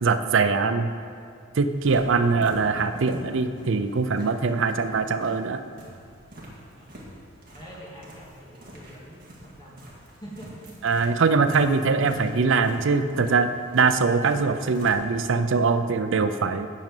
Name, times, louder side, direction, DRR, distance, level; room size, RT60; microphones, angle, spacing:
voice 1, 0.0-0.9 1.6-5.6 10.8-16.7, right 4 dB, 60° right, 10 dB, 0.5 m, -22 dB
sound 1, 1.7-15.1, equal, 40° right, 1.8 m, -46 dB
voice 2, 7.5-9.8 10.1-10.8, equal, 20° left, -6 dB, 2.1 m, -45 dB
9.1 x 5.2 x 7.4 m, 2.4 s
head